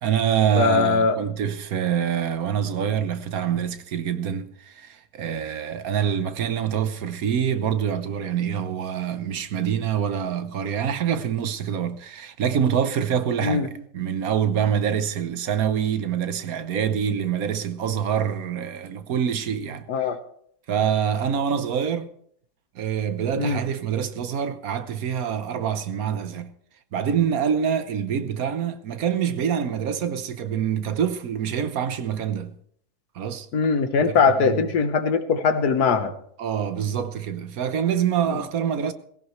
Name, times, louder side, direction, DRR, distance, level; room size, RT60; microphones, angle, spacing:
voice 1, 0.0-20.1 20.7-22.1 22.7-26.5 26.9-32.5 33.1-33.5 34.4-34.7 36.4-38.9, right 8 dB, 70° right, 1.3 m, -25 dB
voice 2, 0.6-1.2 13.4-13.7 19.9-20.2 23.3-23.6 33.5-36.1 38.3-38.4, left 5 dB, 75° left, 1.7 m, -21 dB
18.5 x 16.5 x 3.2 m
omnidirectional pair, 1.7 m